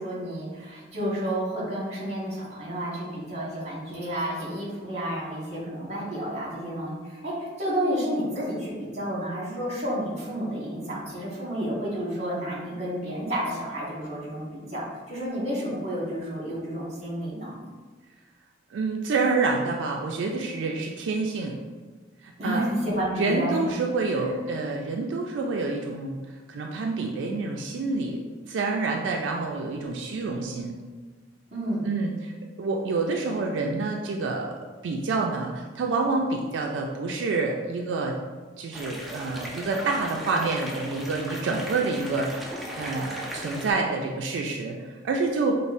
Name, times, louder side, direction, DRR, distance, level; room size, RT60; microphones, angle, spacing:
voice 1, 0.0-17.6 22.4-23.7 24.2-24.3 31.5-31.8, equal, 40° right, -5 dB, 1.2 m, -31 dB
voice 2, 18.7-21.6 22.2-22.6 23.1-26.2 26.5-30.7 31.8-32.3 32.6-34.5 34.8-38.1 38.6-45.5, right 3 dB, 85° right, 1 dB, 0.3 m, -28 dB
sound 1, 38.7-43.7, equal, ahead, 0.4 m, -37 dB
5.3 x 2.0 x 2.5 m, 1.4 s
head